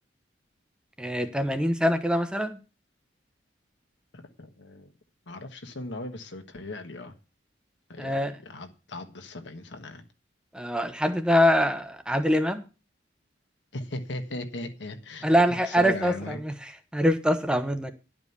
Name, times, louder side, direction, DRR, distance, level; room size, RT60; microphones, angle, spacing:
voice 1, 1.0-2.6 8.0-8.3 10.5-12.6 15.2-16.5 16.9-17.9, equal, 5° right, 0.8 m, -24 dB
voice 2, 4.1-4.9 5.3-7.2 7.9-10.0 13.7-16.4, left 2 dB, 75° left, 1.4 m, -38 dB
11.0 x 5.2 x 6.8 m
head